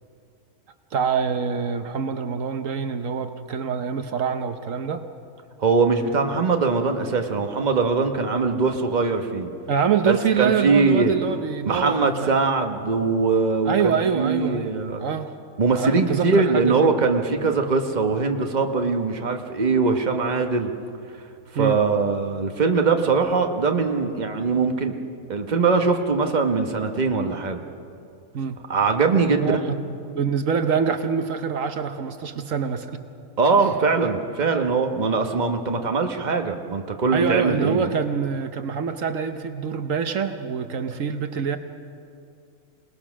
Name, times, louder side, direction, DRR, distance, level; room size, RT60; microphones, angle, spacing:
voice 1, 0.9-5.0 9.7-12.4 13.6-15.3 15.7-16.9 21.5-21.8 28.3-28.6 29.4-33.0 37.1-41.6, right 6 dB, 70° right, 8 dB, 1.2 m, -25 dB
voice 2, 5.6-9.5 10.0-11.1 11.6-15.0 15.6-20.7 21.5-24.9 25.3-27.6 28.7-29.7 33.4-37.9, right 4 dB, 35° right, 5 dB, 1.3 m, -22 dB
27.0 x 19.0 x 6.2 m, 2.5 s
omnidirectional pair, 1.4 m